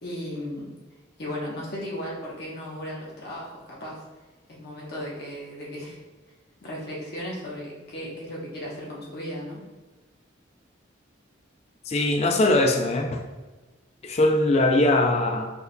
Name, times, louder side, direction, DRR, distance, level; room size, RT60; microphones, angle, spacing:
voice 1, 0.0-0.7 1.2-4.0 4.5-6.0 6.6-9.6, equal, 55° left, -4 dB, 1.0 m, -35 dB
voice 2, 11.9-13.2 14.0-15.5, left 2 dB, 35° left, 4 dB, 0.4 m, -21 dB
5.2 x 4.5 x 2.2 m, 1.2 s
head